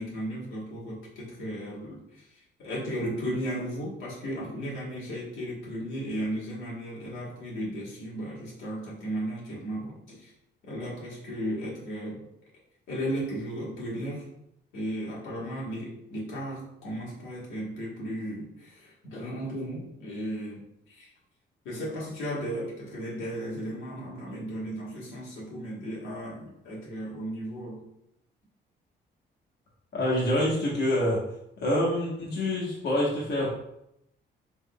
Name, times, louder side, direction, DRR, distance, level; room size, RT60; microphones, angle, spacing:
voice 1, 0.0-10.3 10.6-12.2 12.9-14.3 14.7-21.1 21.6-27.8, equal, 80° left, -6 dB, 1.3 m, -35 dB
voice 2, 29.9-31.2 31.6-33.6, left 1 dB, 55° left, -5 dB, 1.0 m, -26 dB
3.6 x 3.2 x 2.2 m, 0.79 s
cardioid pair, 90°, 20 cm